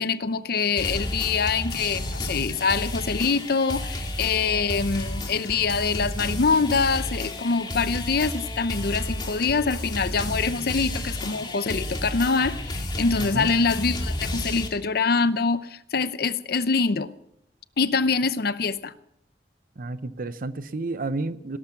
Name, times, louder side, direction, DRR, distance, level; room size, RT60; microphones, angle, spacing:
voice 1, 0.0-17.1 17.8-18.9, left 4 dB, 60° left, 14 dB, 0.7 m, -24 dB
sound 1, 0.8-14.7, left 1 dB, 25° left, 2.1 m, -32 dB
voice 2, 13.2-13.5 19.8-21.6, right 2 dB, 50° right, 14 dB, 0.8 m, -31 dB
18.0 x 12.5 x 5.9 m, 0.78 s
head